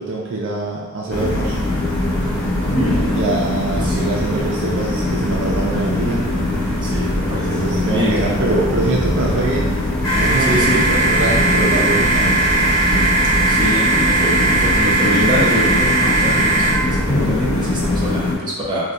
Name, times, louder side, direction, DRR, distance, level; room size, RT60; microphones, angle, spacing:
voice 1, 0.0-1.6 3.1-6.3 7.5-9.8 10.2-13.1, right 2 dB, 60° right, -3 dB, 0.5 m, -23 dB
sound 1, 1.1-18.3, left 1 dB, 20° left, 0.8 m, -21 dB
sound 2, 2.0-14.8, equal, 40° right, 1.3 m, -31 dB
voice 2, 6.8-8.4 9.2-9.5 10.4-10.8 13.5-18.9, equal, 25° right, -6 dB, 0.8 m, -24 dB
sound 3, 10.0-16.7, right 3 dB, 65° left, 1.1 m, -18 dB
3.9 x 2.3 x 2.4 m, 1.2 s
head